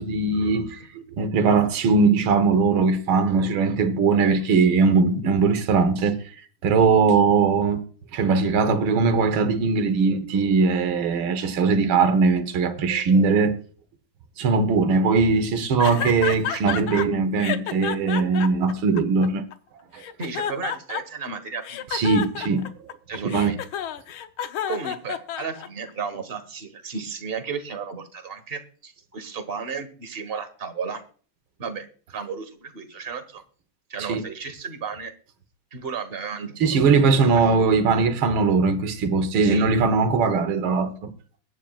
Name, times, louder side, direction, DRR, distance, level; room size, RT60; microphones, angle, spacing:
voice 1, 0.0-6.2 6.6-7.8 8.1-13.5 14.4-19.4 19.9-20.0 21.9-22.7 23.2-23.5 34.1-34.2 36.6-41.1, right 4 dB, 85° right, 2.0 m, -20 dB
sound 1, 15.8-17.1 17.4-19.5 20.0-21.3 21.6-25.9, left 9 dB, 85° left, 1.7 m, -30 dB
voice 2, 20.2-22.0 23.1-23.6 24.7-31.0 31.6-33.4 33.9-35.1 35.7-36.6 39.4-39.7, right 5 dB, 30° right, 1.4 m, -33 dB
22.0 x 10.0 x 2.4 m
omnidirectional pair, 2.2 m